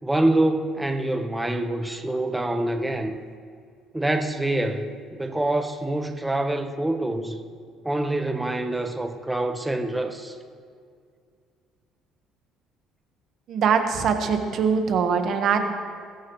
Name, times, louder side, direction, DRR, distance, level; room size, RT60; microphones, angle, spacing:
voice 1, 0.0-3.1 3.9-7.4 7.8-10.3, right 1 dB, 10° right, 6 dB, 1.1 m, -26 dB
voice 2, 13.5-15.6, right 6 dB, 55° right, 6 dB, 1.4 m, -22 dB
21.5 x 13.0 x 3.2 m, 2.2 s
cardioid pair, 110°, 0 cm